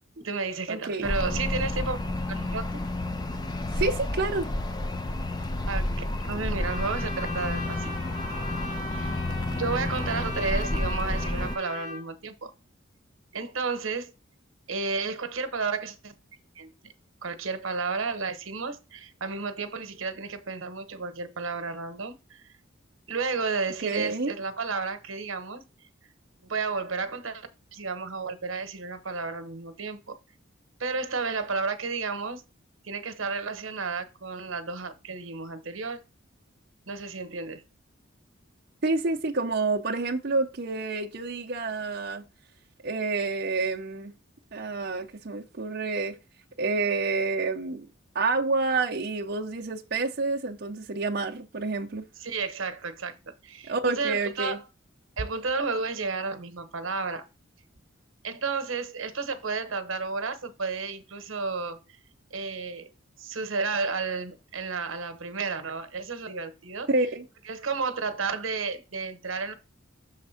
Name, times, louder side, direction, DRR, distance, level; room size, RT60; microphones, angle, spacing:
voice 1, 0.2-2.0 2.3-2.8 5.7-7.9 8.9-9.2 9.5-12.5 13.3-14.1 14.7-16.1 16.5-16.9 17.2-22.5 23.1-25.6 26.4-30.2 30.8-32.4 32.8-36.0 36.9-37.6 52.2-53.1 53.4-54.6 55.2-57.3 58.2-61.8 62.3-62.9 63.2-66.9 67.5-69.5, right 4 dB, 85° right, 1.0 m, -32 dB
voice 2, 0.7-1.1 3.8-4.5 23.8-24.3 38.8-42.2 42.8-44.1 44.5-46.1 46.6-47.9 48.1-52.0 53.7-54.6 66.9-67.2, right 3 dB, 55° right, 0.6 m, -28 dB
sound 1, 1.0-11.6, left 1 dB, 20° left, 0.4 m, -30 dB
Trumpet, 6.6-12.0, equal, 40° left, 1.9 m, -38 dB
6.5 x 3.4 x 5.7 m
head